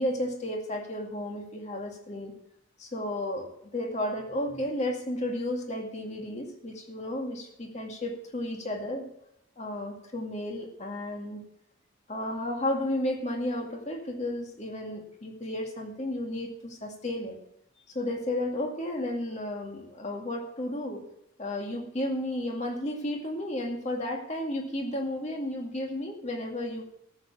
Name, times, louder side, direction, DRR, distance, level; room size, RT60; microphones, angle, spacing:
voice 1, 0.0-2.4 2.8-9.1 9.6-11.4 12.1-17.4 17.9-21.1 21.4-26.8, left 1 dB, 35° left, 2 dB, 2.2 m, -33 dB
13.5 x 7.0 x 7.2 m, 0.75 s
head